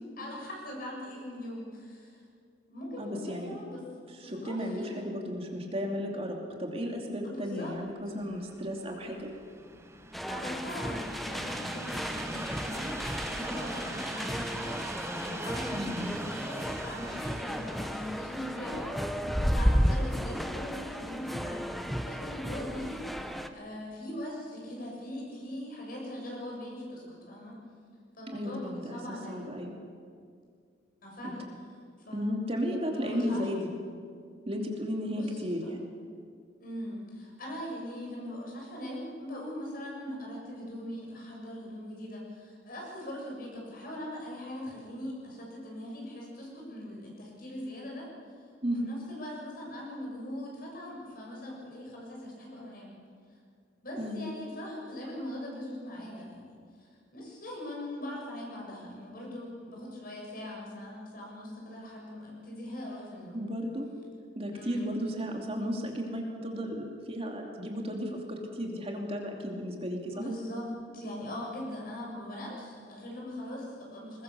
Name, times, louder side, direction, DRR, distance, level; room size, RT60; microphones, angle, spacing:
voice 1, 0.2-2.2 2.7-3.8 4.2-5.0 7.2-7.7 10.3-27.6 28.1-29.5 31.0-31.5 32.1-32.3 32.9-33.5 35.1-35.7 36.6-48.1 48.7-53.0 53.8-63.4 64.5-65.0 70.1-70.7 70.9-74.2, left 1 dB, 55° left, -2 dB, 7.1 m, -41 dB
voice 2, 3.0-3.6 4.2-9.3 15.7-16.2 19.3-19.4 28.3-29.8 32.1-33.7 34.5-35.8 48.6-48.9 54.0-54.2 63.3-63.9 64.4-70.3, equal, 35° right, 1 dB, 2.6 m, -34 dB
Train, 7.9-21.1 21.8-21.9, right 2 dB, 15° right, 1.2 m, -43 dB
sound 1, 10.1-23.5, equal, ahead, 0.9 m, -33 dB
21.5 x 21.0 x 6.9 m, 2.2 s
head